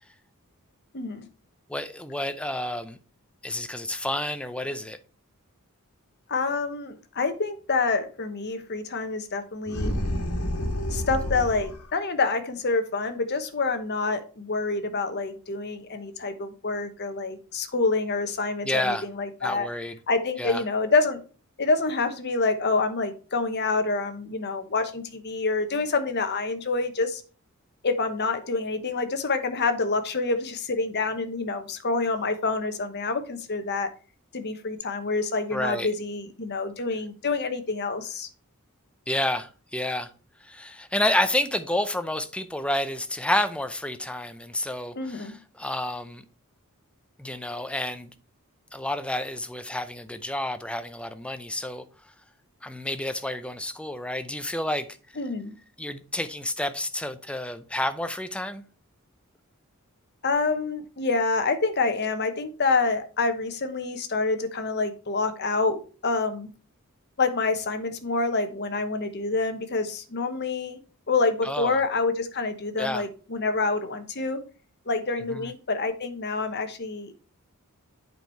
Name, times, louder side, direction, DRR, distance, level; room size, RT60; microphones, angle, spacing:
voice 1, 0.9-1.3 6.3-9.9 10.9-19.7 20.1-21.2 21.6-27.2 27.8-33.9 34.3-38.3 45.0-45.4 55.2-55.5 60.2-66.5 67.2-70.8 71.1-74.4 74.9-77.2, left 3 dB, 50° left, 1.0 m, -27 dB
voice 2, 1.7-3.0 3.4-5.0 18.6-19.1 19.4-20.0 20.4-20.6 35.5-35.9 39.1-40.1 40.4-46.2 47.2-48.1 48.7-51.8 52.6-54.9 55.8-58.6 71.4-71.8 72.8-73.0 75.3-75.5, left 1 dB, 5° left, 0.6 m, -30 dB
sound 1, 9.7-11.9, left 1 dB, 85° left, 1.6 m, -29 dB
8.2 x 4.7 x 4.4 m
head